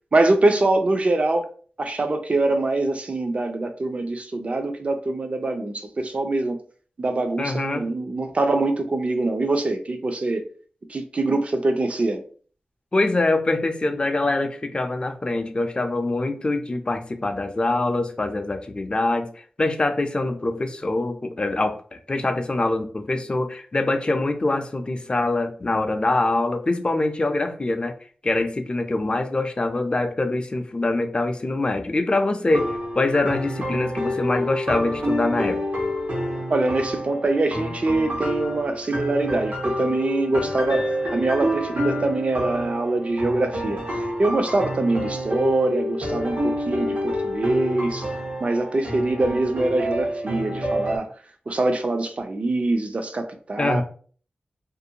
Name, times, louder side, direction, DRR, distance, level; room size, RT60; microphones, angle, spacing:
voice 1, 0.1-1.5 1.8-6.6 7.0-10.4 10.9-12.2 36.5-48.1 48.4-51.1 51.5-53.8, right 2 dB, 45° right, 0.4 m, -24 dB
voice 2, 7.4-7.8 12.9-27.9 28.2-35.6 53.6-53.8, left 2 dB, 35° left, 0.4 m, -24 dB
sound 1, 32.5-51.0, equal, 80° right, 0.9 m, -28 dB
2.5 x 2.2 x 2.7 m
wide cardioid pair, 70°, 3 cm